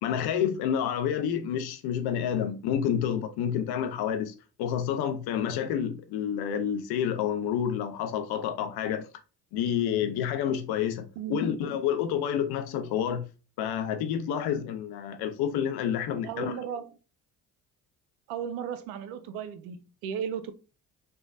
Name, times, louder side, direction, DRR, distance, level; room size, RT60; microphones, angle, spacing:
voice 1, 0.0-4.3 4.6-9.1 9.5-13.3 13.6-16.6, left 9 dB, 55° left, 0.6 m, -29 dB
voice 2, 16.2-17.0 18.3-20.5, right 8 dB, 70° right, 0.5 m, -35 dB
3.2 x 2.2 x 2.5 m
hypercardioid pair, 55°, 45 cm